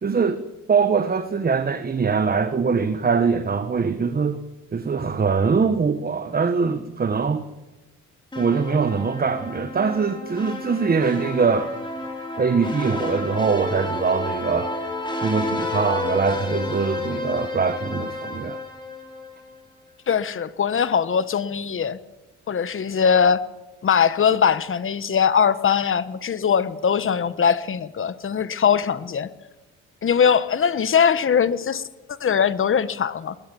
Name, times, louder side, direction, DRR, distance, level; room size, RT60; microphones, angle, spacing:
voice 1, 0.0-0.4 0.7-4.4 4.7-7.5 8.4-11.7 12.4-14.7 15.2-18.6, right 5 dB, 30° right, 1.3 m, -22 dB
sound 1, 8.3-19.6, left 2 dB, 15° left, 5.9 m, -30 dB
voice 2, 20.1-22.0 22.5-23.4 23.8-29.3 30.0-31.8 32.2-33.3, left 7 dB, 45° left, 1.3 m, -21 dB
21.5 x 20.5 x 7.2 m
cardioid pair, 90°, 30 cm